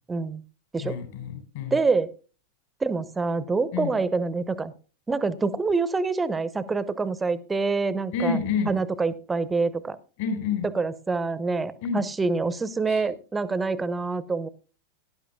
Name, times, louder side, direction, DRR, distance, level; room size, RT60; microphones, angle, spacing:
voice 1, 0.1-0.4 0.7-1.0 1.7-2.1 2.8-4.7 5.1-8.4 8.7-10.0 10.7-14.5, right 4 dB, 10° right, 16 dB, 0.8 m, -26 dB
voice 2, 0.8-1.8 3.7-4.0 8.1-8.8 10.2-10.7 11.8-12.0 12.9-13.0, left 5 dB, 55° left, 6 dB, 4.1 m, -29 dB
18.0 x 11.0 x 2.3 m, 0.36 s
figure-of-eight pair, 90°, 0 cm